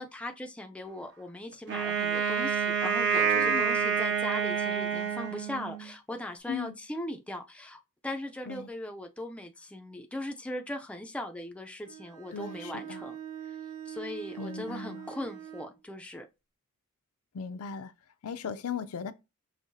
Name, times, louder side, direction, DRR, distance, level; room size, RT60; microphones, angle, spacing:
voice 1, 0.0-13.2 13.5-13.6 13.9-16.3, left 1 dB, 5° left, 0.3 m, -39 dB
Wind instrument woodwind instrument, 1.7-5.9, right 6 dB, 55° right, 0.6 m, -28 dB
voice 2, 3.4-3.7 6.5-6.7 8.5-8.7 12.3-13.0 14.4-15.1 17.3-17.9 18.2-19.1, left 6 dB, 75° left, 0.5 m, -37 dB
Bowed string instrument, 11.8-15.8, right 10 dB, 85° right, 1.8 m, -43 dB
5.3 x 3.1 x 2.6 m
head